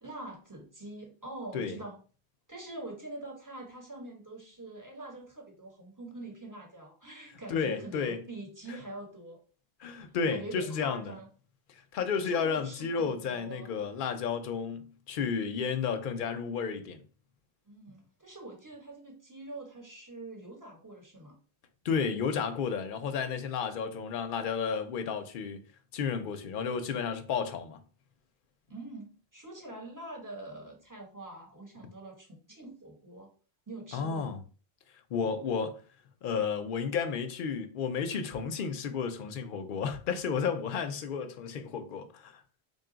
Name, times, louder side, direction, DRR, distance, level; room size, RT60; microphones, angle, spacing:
voice 1, 0.0-2.0 2.5-9.4 10.0-11.3 12.2-13.7 17.6-21.4 28.7-33.3 33.7-34.4, right 2 dB, 20° right, 1.0 m, -44 dB
voice 2, 7.5-8.2 9.8-11.1 11.7-17.0 21.8-25.6 25.9-27.8 33.9-34.4 35.1-35.8 36.2-42.4, left 6 dB, 60° left, 0.7 m, -32 dB
3.9 x 2.3 x 3.8 m
omnidirectional pair, 1.1 m